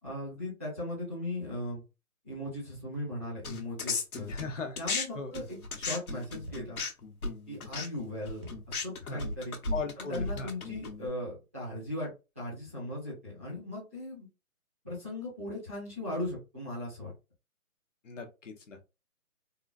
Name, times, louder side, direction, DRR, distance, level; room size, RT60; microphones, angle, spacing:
voice 1, 0.0-1.8 2.2-4.3 4.8-6.8 7.5-9.6 10.0-12.1 12.3-14.3 14.8-17.1, left 1 dB, 10° right, -11 dB, 0.8 m, -38 dB
sound 1, 3.4-5.1 5.3-11.1, left 3 dB, 70° left, 1.1 m, -36 dB
voice 2, 4.3-4.8 5.2-5.3 9.1-9.2 9.7-10.5 18.0-18.8, left 4 dB, 55° left, 4 dB, 0.8 m, -38 dB
sound 2, 6.5-6.9 8.4-8.8 10.3-10.7, right 1 dB, 45° right, 0.4 m, -47 dB
3.8 x 2.1 x 2.4 m, 0.27 s
hypercardioid pair, 170°, 44 cm